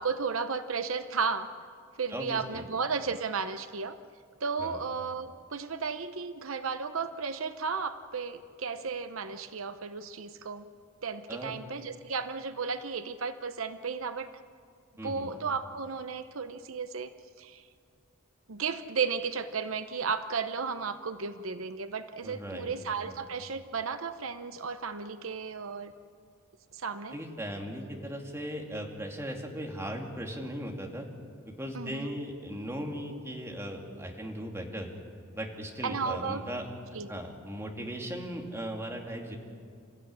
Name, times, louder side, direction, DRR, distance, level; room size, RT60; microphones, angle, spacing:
voice 1, 0.0-1.5 2.0-4.0 4.4-10.6 11.0-14.3 15.0-17.1 17.4-17.6 18.5-25.9 26.7-27.2 31.7-32.1 35.8-36.4 36.9-37.1, right 5 dB, 75° right, 10 dB, 0.8 m, -34 dB
voice 2, 2.1-2.6 4.6-4.8 11.3-11.5 15.0-15.3 22.2-22.7 23.0-23.2 27.1-31.1 31.6-34.9 35.3-36.7 37.1-39.4, equal, 15° right, 1 dB, 2.6 m, -38 dB
28.5 x 15.0 x 9.7 m, 2.2 s
head